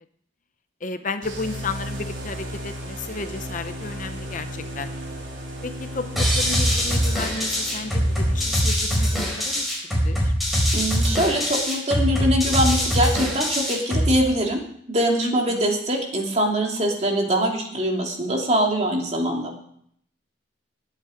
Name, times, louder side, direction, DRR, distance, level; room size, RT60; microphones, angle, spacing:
voice 1, 0.8-4.9 5.6-10.3 15.2-15.8, left 3 dB, 40° left, 9 dB, 0.8 m, -33 dB
sound 1, 1.2-8.9, equal, 80° right, 4.2 m, -35 dB
sound 2, 6.2-14.2, equal, ahead, 4.5 m, -22 dB
voice 2, 10.7-14.6 14.9-19.5, equal, 35° right, 1 dB, 2.8 m, -23 dB
20.0 x 8.4 x 5.1 m, 0.67 s
head